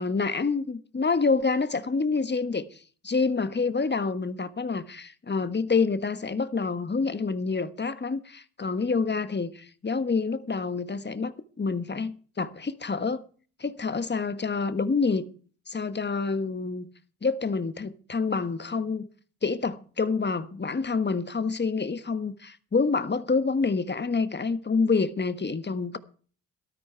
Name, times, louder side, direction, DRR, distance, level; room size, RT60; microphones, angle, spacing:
voice 1, 0.0-13.2 13.6-15.3 15.7-16.9 17.2-19.1 19.4-26.0, left 4 dB, 30° left, 1.4 m, -27 dB
13.0 x 13.0 x 4.6 m
supercardioid pair, 55°, 34 cm